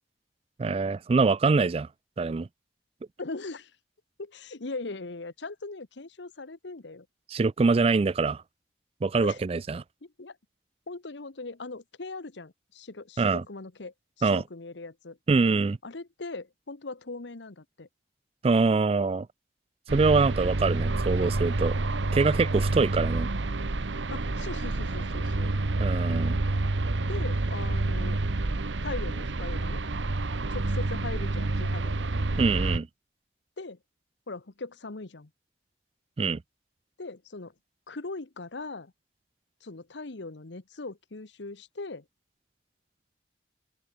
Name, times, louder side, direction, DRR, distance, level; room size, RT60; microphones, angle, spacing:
voice 1, 0.6-1.9 2.2-2.5 7.3-8.4 9.0-9.8 13.2-13.4 14.2-14.4 15.3-15.8 18.4-19.3 19.9-21.8 22.1-23.3 25.8-26.4 32.4-32.9 36.2-36.4, right 4 dB, 30° right, 0.3 m, -24 dB
voice 2, 3.2-3.7 4.2-7.1 9.2-9.4 10.0-10.4 10.9-15.2 15.8-17.9 24.1-25.6 27.1-28.2 28.8-29.8 30.5-32.1 33.6-33.8 34.3-35.3 37.0-37.5 37.9-38.9 39.6-42.0, left 3 dB, 80° left, 1.1 m, -40 dB
sound 1, 19.9-32.8, right 2 dB, 90° right, 1.1 m, -28 dB
open air
head